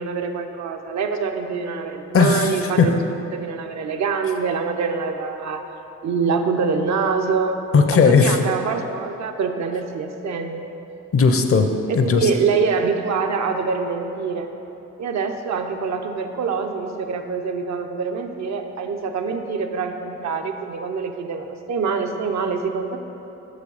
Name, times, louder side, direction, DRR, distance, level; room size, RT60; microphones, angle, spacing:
voice 1, 0.0-3.0 3.3-5.6 6.0-7.6 8.1-10.6 11.9-14.5 15.0-23.0, right 5 dB, 60° right, 5 dB, 0.7 m, -25 dB
voice 2, 2.1-2.9 7.7-8.4 11.1-12.3, left 5 dB, 45° left, 6 dB, 0.7 m, -17 dB
6.3 x 5.1 x 5.4 m, 3.0 s
supercardioid pair, 60°, 32 cm